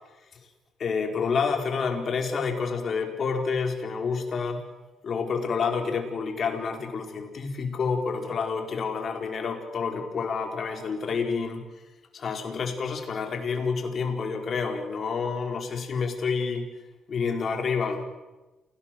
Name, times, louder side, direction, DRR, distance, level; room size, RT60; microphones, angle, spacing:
voice 1, 0.8-4.6 5.0-11.6 12.1-16.7 17.1-18.0, left 5 dB, 50° left, 4 dB, 4.5 m, -28 dB
28.5 x 18.0 x 7.7 m, 1.1 s
cardioid pair, 90°, 0 cm